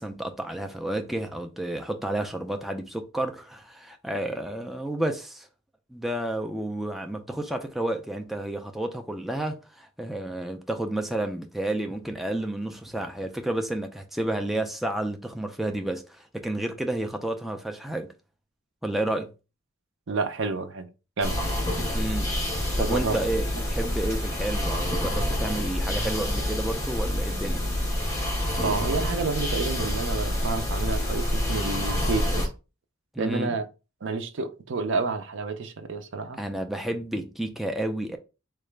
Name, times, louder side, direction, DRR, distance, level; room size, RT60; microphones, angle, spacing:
voice 1, 0.0-5.5 5.9-18.1 18.8-19.3 21.9-22.3 22.8-27.7 33.1-33.6 36.4-38.2, right 1 dB, ahead, 0.3 m, -31 dB
voice 2, 20.1-20.9 21.2-21.4 22.8-23.3 28.6-32.5 33.2-33.7 34.0-36.4, right 3 dB, 60° right, 0.5 m, -29 dB
sound 1, 21.2-32.5, left 1 dB, 15° left, 1.0 m, -27 dB
3.7 x 2.4 x 3.2 m
head